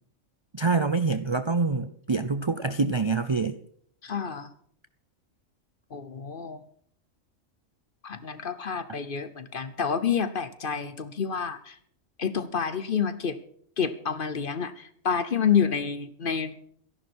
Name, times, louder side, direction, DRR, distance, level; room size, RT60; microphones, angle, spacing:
voice 1, 0.5-3.6, right 4 dB, 40° right, 11 dB, 0.4 m, -26 dB
voice 2, 4.0-4.5 5.9-6.6 8.0-11.8 12.2-13.4 13.8-16.7, left 7 dB, 45° left, 13 dB, 1.0 m, -28 dB
13.5 x 11.0 x 6.2 m, 0.63 s
omnidirectional pair, 1.4 m